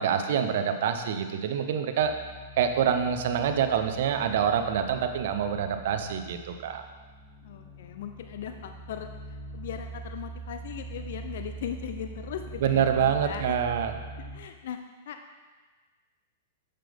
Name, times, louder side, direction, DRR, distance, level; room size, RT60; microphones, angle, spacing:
voice 1, 0.0-2.1 2.6-6.8 12.6-14.0, right 8 dB, 65° right, 7 dB, 0.7 m, -26 dB
sound 1, 2.0-14.4, right 3 dB, 20° right, 1.5 m, -43 dB
voice 2, 7.4-13.6 14.2-14.8 15.1-15.4, left 9 dB, 65° left, 6 dB, 0.5 m, -39 dB
7.5 x 6.7 x 3.5 m, 1.3 s
hypercardioid pair, 120°, 0 cm